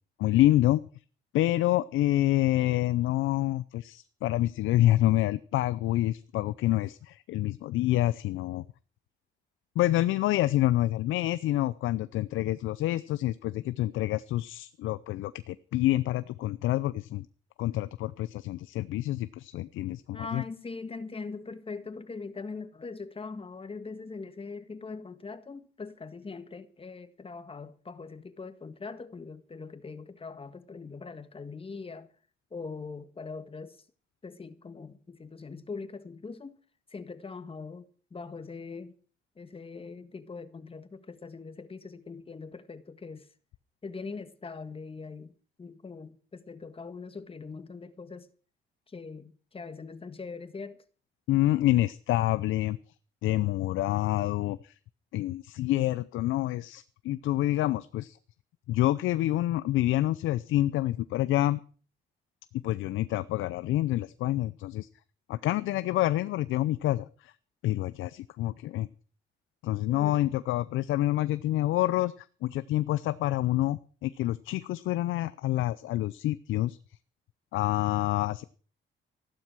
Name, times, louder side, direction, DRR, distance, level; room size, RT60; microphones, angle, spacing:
voice 1, 0.2-0.8 1.3-8.6 9.8-17.3 17.6-20.4 51.3-52.8 53.2-54.7 55.1-58.2 58.7-61.6 62.6-64.9 65.3-67.3 67.6-68.9 69.6-76.8 77.5-78.4, left 15 dB, 85° left, 0.6 m, -27 dB
voice 2, 20.1-32.1 32.5-33.8 34.2-36.5 36.9-38.9 39.4-43.3 43.8-45.3 45.6-48.3 48.9-50.8 69.9-70.2, left 4 dB, 30° left, 1.7 m, -42 dB
14.5 x 12.0 x 6.1 m
cardioid pair, 90°, 20 cm